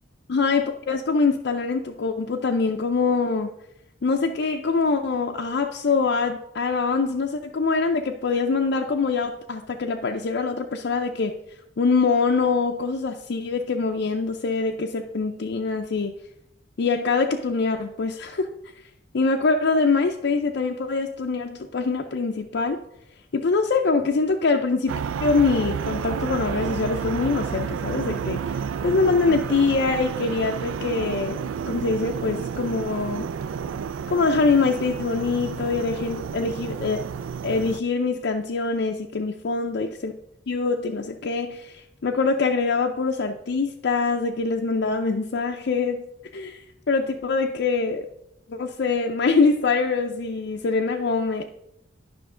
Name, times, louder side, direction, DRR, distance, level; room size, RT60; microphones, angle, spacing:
voice 1, 0.3-3.5 4.0-11.3 11.8-16.1 16.8-18.5 19.1-22.8 23.3-28.6 28.8-31.4 31.7-33.3 34.1-37.1 37.4-40.1 40.5-46.0 46.3-48.1 48.5-51.4, left 4 dB, 60° left, 2 dB, 0.5 m, -24 dB
sound 1, 24.9-37.8, right 7 dB, 85° right, 0.3 m, -30 dB
10.0 x 5.8 x 3.7 m, 0.80 s
head